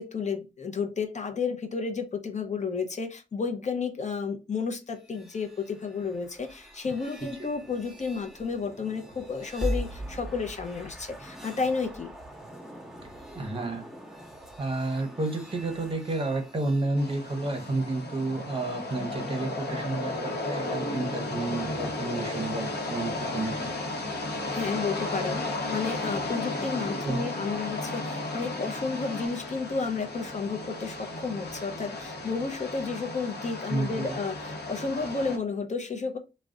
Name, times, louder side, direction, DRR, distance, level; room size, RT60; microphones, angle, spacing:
voice 1, 0.0-12.1 24.5-36.2, left 5 dB, 45° left, 0.5 m, -32 dB
sound 1, 4.9-17.8, equal, ahead, 0.8 m, -41 dB
voice 2, 13.3-13.9 14.6-23.7 27.0-27.3 33.7-34.2, right 2 dB, 30° right, 0.7 m, -31 dB
sound 2, 17.0-35.4, left 2 dB, 70° left, 0.8 m, -34 dB
2.4 x 2.1 x 3.6 m
wide cardioid pair, 90°, 17 cm